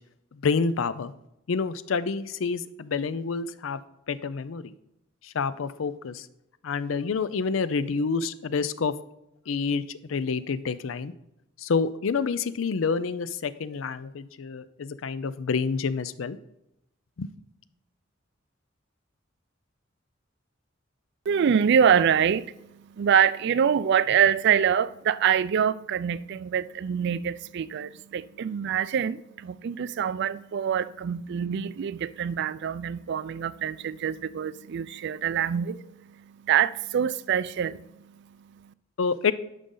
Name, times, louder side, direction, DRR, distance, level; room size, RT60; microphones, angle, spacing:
voice 1, 0.3-1.1 1.5-3.8 4.1-4.7 5.2-6.3 6.6-8.9 9.5-11.1 11.6-16.4 17.2-17.3 39.0-39.3, left 5 dB, 80° left, 0.5 m, -28 dB
voice 2, 21.3-22.7 23.0-36.0 36.4-37.8, right 8 dB, 60° right, 0.3 m, -25 dB
11.0 x 5.1 x 3.8 m
head